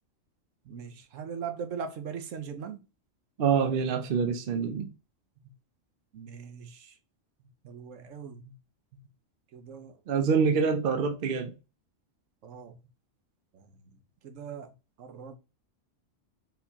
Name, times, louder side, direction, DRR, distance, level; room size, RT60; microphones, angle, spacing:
voice 1, 0.6-2.9 5.4-5.5 6.1-7.0 7.6-8.6 8.9-9.0 9.5-10.0 12.4-12.8 13.5-15.4, right 6 dB, 75° right, 1.1 m, -41 dB
voice 2, 3.4-4.9 10.1-11.5, right 6 dB, 55° right, 0.7 m, -26 dB
4.4 x 3.6 x 2.8 m
omnidirectional pair, 1.3 m